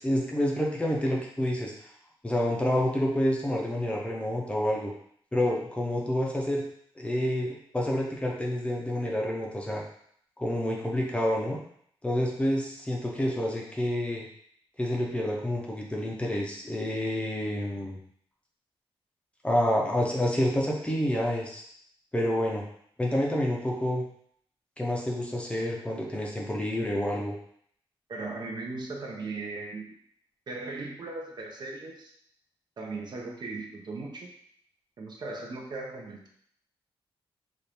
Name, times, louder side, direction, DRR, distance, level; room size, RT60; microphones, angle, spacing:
voice 1, 0.0-1.7 2.2-4.9 5.3-6.6 7.0-9.8 10.4-11.6 12.0-14.3 14.8-18.0 19.4-21.6 22.1-22.6 23.0-24.0 24.8-27.3, left 1 dB, 10° left, -2 dB, 0.6 m, -28 dB
voice 2, 28.1-29.9 30.5-32.1 32.8-34.3 35.0-36.3, right 3 dB, 50° right, 0 dB, 0.7 m, -38 dB
4.2 x 2.5 x 3.4 m, 0.65 s
wide cardioid pair, 145°, 10 cm